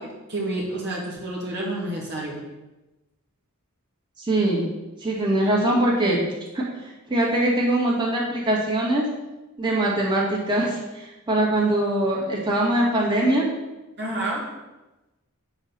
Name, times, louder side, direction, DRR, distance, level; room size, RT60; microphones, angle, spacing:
voice 1, 0.3-2.4 14.0-14.5, right 1 dB, 50° right, -3 dB, 1.7 m, -29 dB
voice 2, 4.2-4.7 5.0-6.2 6.5-9.1 9.6-13.5, right 1 dB, 20° right, -5 dB, 2.0 m, -22 dB
7.9 x 4.2 x 6.8 m, 1.1 s
head